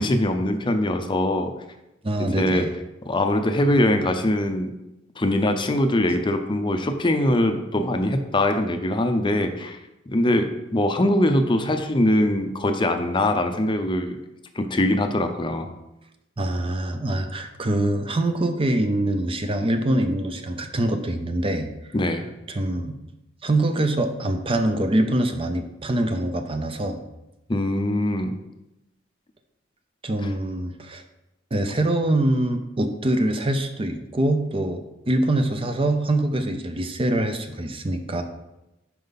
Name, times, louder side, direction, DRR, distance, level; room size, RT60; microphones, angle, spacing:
voice 1, 0.0-1.5 2.2-2.7 3.1-4.7 5.2-9.8 10.1-14.2 14.5-15.7 21.9-22.2 27.5-28.4, left 1 dB, 25° left, 6 dB, 0.6 m, -22 dB
voice 2, 2.0-2.7 16.4-21.7 22.5-23.0 23.4-27.0 30.0-31.0 31.5-38.2, right 1 dB, 30° right, 7 dB, 0.6 m, -24 dB
10.5 x 4.6 x 4.0 m, 0.94 s
head